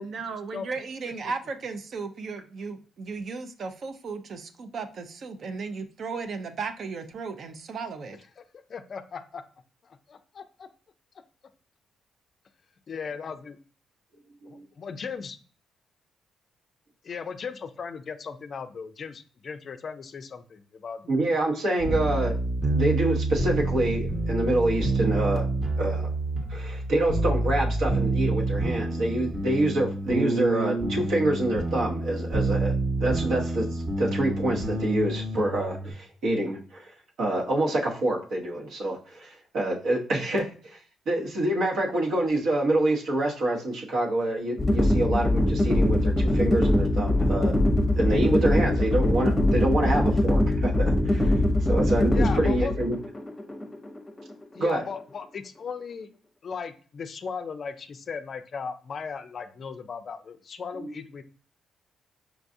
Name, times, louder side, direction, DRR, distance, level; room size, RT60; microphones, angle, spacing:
voice 1, 0.0-8.2, right 4 dB, 55° right, 8 dB, 0.5 m, -35 dB
voice 2, 8.7-9.4 9.8-10.7 12.9-13.6 14.5-15.4 17.0-21.2 52.1-52.7 54.5-56.1 56.4-61.2, left 5 dB, 50° left, 10 dB, 0.4 m, -37 dB
voice 3, 21.1-22.3 22.7-25.5 25.8-26.1 26.5-32.7 33.0-36.9 37.2-40.5 41.1-47.5 48.0-51.3 51.6-53.0 54.6-54.8 60.7-60.9, right 1 dB, 70° right, -1 dB, 0.9 m, -26 dB
sound 1, 21.8-35.9, right 2 dB, 40° right, 1.0 m, -28 dB
sound 2, 44.6-54.6, left 1 dB, 20° left, 0.7 m, -23 dB
4.6 x 2.3 x 2.6 m, 0.42 s
cardioid pair, 90°, 0 cm